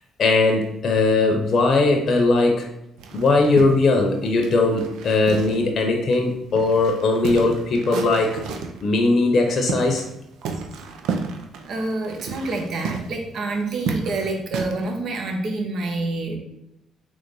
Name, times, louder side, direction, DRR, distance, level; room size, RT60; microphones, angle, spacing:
voice 1, 0.2-2.7 3.1-8.4 8.8-10.0, left 3 dB, 55° left, 3 dB, 0.8 m, -19 dB
sound 1, 3.0-5.8 6.1-6.2 6.5-8.8 9.3-10.2 10.4-14.9, right 5 dB, 80° right, 0.6 m, -32 dB
voice 2, 11.7-16.4, right 2 dB, 65° right, 2 dB, 1.0 m, -27 dB
3.9 x 3.1 x 4.0 m, 0.86 s
supercardioid pair, 60°, 0 cm